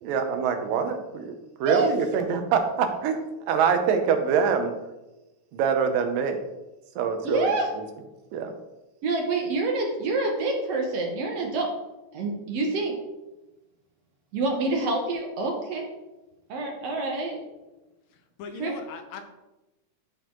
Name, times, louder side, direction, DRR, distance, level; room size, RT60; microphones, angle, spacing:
voice 1, 0.0-3.2 3.5-4.7 5.5-6.4 7.0-7.5 7.8-7.9 8.3-8.5, right 6 dB, 85° right, 6 dB, 2.6 m, -24 dB
voice 2, 7.2-7.7 9.0-11.7 12.1-13.0 14.3-15.8 16.5-17.4 18.6-18.7, right 3 dB, 60° right, 1 dB, 1.9 m, -27 dB
voice 3, 18.1-19.2, left 5 dB, 90° left, 6 dB, 2.6 m, -40 dB
13.5 x 4.5 x 3.8 m, 1.0 s
omnidirectional pair, 3.8 m